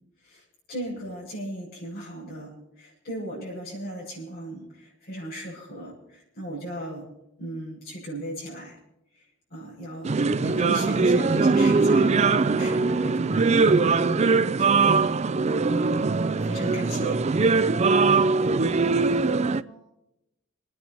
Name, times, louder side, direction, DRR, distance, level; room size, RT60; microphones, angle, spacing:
voice 1, 0.2-7.1 7.4-8.8 9.5-13.7 14.0-15.0 16.2-17.2, right 1 dB, 55° left, -6 dB, 7.2 m, -37 dB
sound 1, 10.0-19.6, right 4 dB, 35° right, 0.5 m, -21 dB
voice 2, 17.7-19.8, right 2 dB, 20° left, -4 dB, 5.7 m, -50 dB
27.5 x 9.6 x 4.5 m, 0.88 s
head